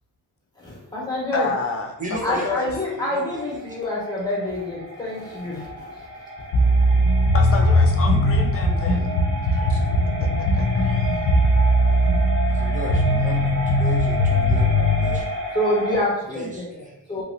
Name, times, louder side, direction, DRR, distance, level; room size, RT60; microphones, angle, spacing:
voice 1, 0.6-1.5 2.2-5.9 15.5-16.7 17.1-17.2, left 1 dB, 10° left, -6 dB, 1.2 m, -26 dB
voice 2, 1.3-1.9 2.3-2.7 7.3-9.1 9.5-9.8 10.5-11.1 12.6-12.8, left 4 dB, 35° left, 1 dB, 0.5 m, -29 dB
sound 1, 1.6-16.0, equal, 70° right, 1.1 m, -33 dB
voice 3, 2.0-2.7 2.9-3.8 12.4-15.3 16.3-17.2, equal, 20° right, -2 dB, 0.7 m, -35 dB
sound 2, 6.5-15.2, equal, 90° left, 0.5 m, -19 dB
3.1 x 2.8 x 2.5 m, 0.85 s
cardioid pair, 120°, 40 cm